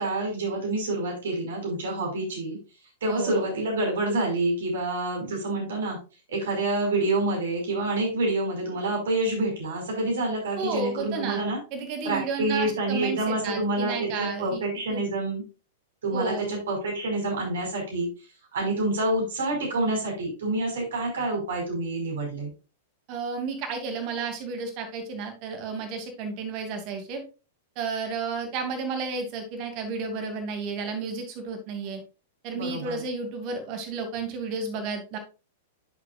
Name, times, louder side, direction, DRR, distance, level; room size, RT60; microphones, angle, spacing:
voice 1, 0.0-2.6 3.0-6.0 6.3-11.6 12.1-15.4 16.0-18.1 18.5-22.5 32.5-33.0, right 2 dB, 65° right, 0 dB, 5.1 m, -27 dB
voice 2, 3.1-3.4 10.6-11.4 11.7-14.6 14.9-15.0 16.1-16.6 23.1-27.2 27.8-32.0 32.4-35.2, right 4 dB, 40° right, 6 dB, 2.6 m, -32 dB
10.5 x 7.1 x 2.4 m, 0.32 s
figure-of-eight pair, 100°, 0 cm